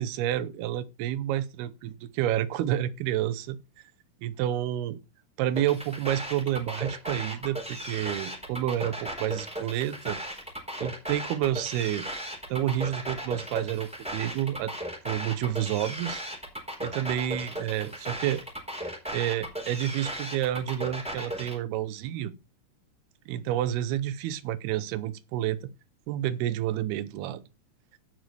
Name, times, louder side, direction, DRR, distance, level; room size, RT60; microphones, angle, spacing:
voice 1, 0.0-3.6 4.2-5.0 5.4-10.2 10.8-12.1 12.5-14.7 15.1-16.2 16.8-18.4 19.1-22.3 23.3-25.6 26.1-27.4, right 12 dB, 90° right, 2.8 m, -29 dB
sound 1, 5.6-21.6, right 1 dB, ahead, 3.5 m, -36 dB
15.5 x 6.2 x 3.3 m
omnidirectional pair, 4.4 m